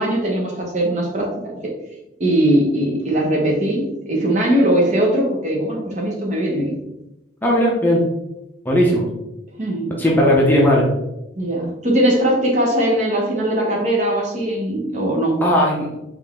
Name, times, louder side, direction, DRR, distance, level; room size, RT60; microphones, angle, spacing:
voice 1, 0.0-1.7 2.2-6.7 9.6-9.8 11.4-15.4, right 1 dB, 40° right, -1 dB, 1.0 m, -20 dB
voice 2, 7.4-8.0 8.6-9.0 10.0-10.9 15.4-16.0, equal, 10° left, -3 dB, 0.7 m, -16 dB
4.2 x 3.2 x 3.5 m, 0.91 s
head